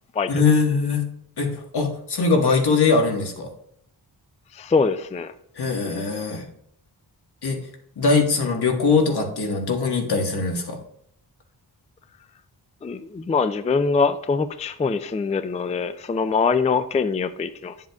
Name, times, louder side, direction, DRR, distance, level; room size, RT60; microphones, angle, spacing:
voice 1, 0.3-1.0 1.4-3.5 5.5-6.4 7.4-7.6 8.0-10.8, left 4 dB, 70° left, 2 dB, 1.6 m, -21 dB
voice 2, 4.5-5.3 12.8-17.7, left 4 dB, 20° left, 12 dB, 0.3 m, -23 dB
10.5 x 7.4 x 2.4 m, 0.71 s
wide cardioid pair, 120°, 40 cm